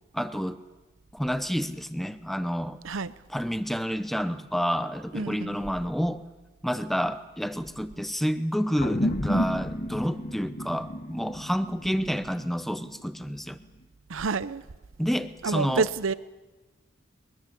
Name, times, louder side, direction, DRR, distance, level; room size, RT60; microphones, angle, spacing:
voice 1, 0.1-0.6 1.1-2.8 3.3-6.2 6.6-13.6 15.0-15.9, equal, ahead, 0.7 m, -29 dB
voice 2, 5.1-5.6 14.1-14.6 15.4-16.1, right 4 dB, 80° right, 0.7 m, -28 dB
sound 1, 8.8-13.5, equal, 35° left, 1.4 m, -31 dB
22.0 x 21.5 x 7.0 m
head